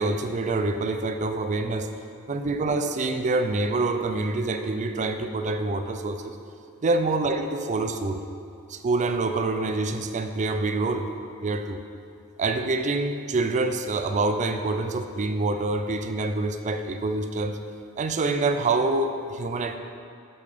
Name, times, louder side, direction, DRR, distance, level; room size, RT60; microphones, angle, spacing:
voice 1, 0.0-1.9 2.3-6.4 6.8-8.2 8.7-11.1 11.4-11.8 12.4-17.6 18.0-19.8, right 3 dB, 35° right, 7 dB, 0.4 m, -26 dB
6.8 x 5.7 x 5.0 m, 2.4 s
head